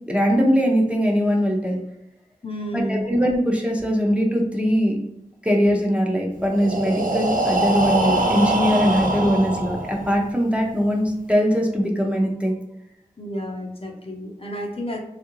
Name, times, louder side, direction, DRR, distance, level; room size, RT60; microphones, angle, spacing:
voice 1, 0.1-1.8 2.7-5.0 5.4-12.6, equal, 10° right, -1 dB, 0.6 m, -21 dB
voice 2, 2.4-3.1 13.2-15.0, equal, 40° left, 0 dB, 0.6 m, -30 dB
Breathing, 6.4-10.3, right 1 dB, 65° right, 0.5 m, -23 dB
3.4 x 2.4 x 3.0 m, 0.80 s
wide cardioid pair, 40°, 15 cm